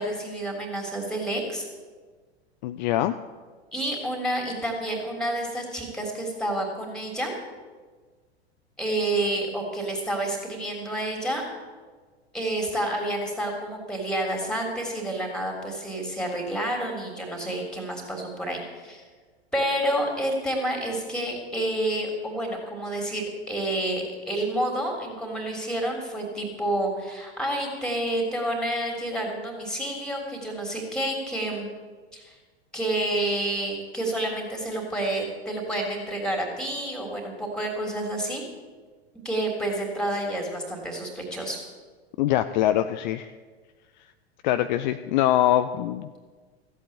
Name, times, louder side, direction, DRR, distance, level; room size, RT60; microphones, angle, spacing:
voice 1, 0.0-1.7 3.7-7.3 8.8-11.4 12.3-19.0 19.5-31.7 32.1-32.3 32.7-38.4 39.2-41.7, right 1 dB, ahead, 2 dB, 3.4 m, -29 dB
voice 2, 2.6-3.2 42.2-43.3 44.4-46.3, left 13 dB, 45° left, 10 dB, 0.6 m, -23 dB
14.5 x 8.4 x 8.5 m, 1.4 s
figure-of-eight pair, 90°, 33 cm